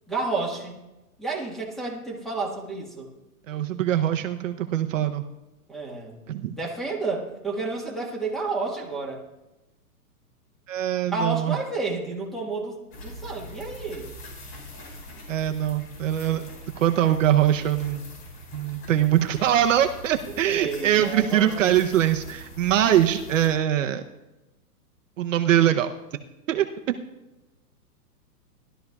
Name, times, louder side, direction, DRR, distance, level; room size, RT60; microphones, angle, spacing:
voice 1, 0.1-0.8 1.2-3.1 5.7-6.2 6.5-9.2 11.0-14.1 20.4-21.7, right 3 dB, ahead, -1 dB, 1.4 m, -30 dB
voice 2, 3.5-5.2 6.3-6.5 10.7-11.6 15.3-16.4 16.8-18.0 18.5-24.0 25.2-25.9 26.5-27.0, right 11 dB, 55° right, 6 dB, 0.8 m, -22 dB
sound 1, 12.9-23.5, left 1 dB, 35° left, 5.1 m, -43 dB
19.0 x 12.5 x 2.3 m, 1.0 s
hypercardioid pair, 150°, 46 cm